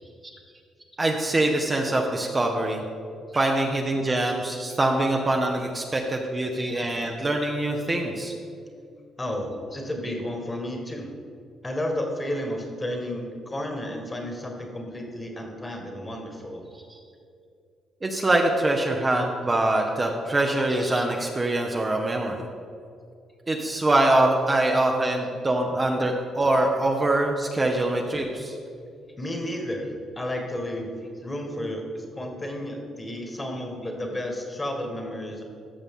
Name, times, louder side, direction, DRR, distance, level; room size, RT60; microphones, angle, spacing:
voice 1, 1.0-2.8 3.3-8.3 16.7-17.0 18.0-22.4 23.5-28.6, right 1 dB, 25° right, 1 dB, 0.9 m, -24 dB
voice 2, 9.2-11.1 11.6-16.6 29.2-30.9 31.2-35.4, left 1 dB, 20° left, 2 dB, 1.7 m, -32 dB
14.0 x 5.7 x 3.7 m, 2.4 s
cardioid pair, 90°, 0 cm